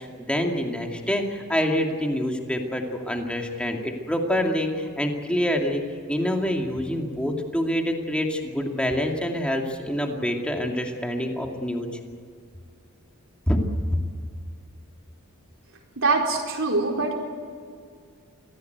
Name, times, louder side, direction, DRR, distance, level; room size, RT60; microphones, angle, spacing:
voice 1, 0.0-5.8 6.1-11.9 13.5-13.6, equal, 5° left, 2 dB, 2.4 m, -26 dB
voice 2, 16.0-17.1, right 3 dB, 65° right, 1 dB, 4.3 m, -23 dB
24.5 x 16.5 x 8.1 m, 2.2 s
head